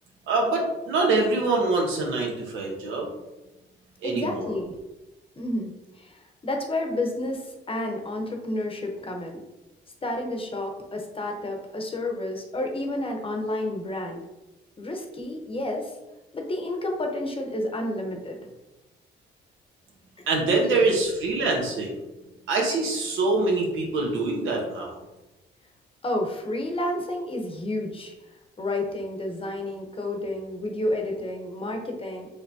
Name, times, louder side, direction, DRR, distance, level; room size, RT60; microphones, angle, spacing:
voice 1, 0.3-3.1 4.0-4.5 20.3-22.0 22.5-25.0, right 3 dB, 85° right, 0 dB, 1.0 m, -24 dB
voice 2, 4.0-4.7 5.4-9.4 10.0-14.2 14.8-15.9 16.3-18.4 20.5-20.9 26.0-28.1 28.6-32.3, left 1 dB, 25° left, 2 dB, 0.8 m, -30 dB
5.0 x 3.0 x 2.7 m, 1.0 s
cardioid pair, 90°, 20 cm